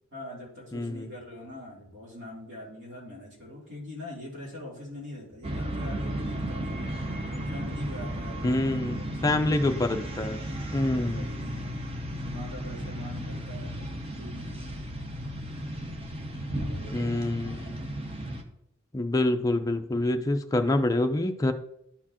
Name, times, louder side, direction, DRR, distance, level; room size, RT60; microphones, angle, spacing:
voice 1, 0.1-6.8 7.5-8.6 9.0-9.5 10.7-11.8 12.1-14.8 16.5-17.2, left 1 dB, 60° right, -5 dB, 3.1 m, -43 dB
voice 2, 0.7-1.1 8.4-10.4 10.7-11.3 16.9-17.8 18.9-21.5, left 2 dB, 15° left, 6 dB, 0.4 m, -26 dB
sound 1, 5.4-18.4, right 1 dB, 30° right, 0.7 m, -34 dB
12.0 x 4.4 x 2.9 m, 0.78 s
head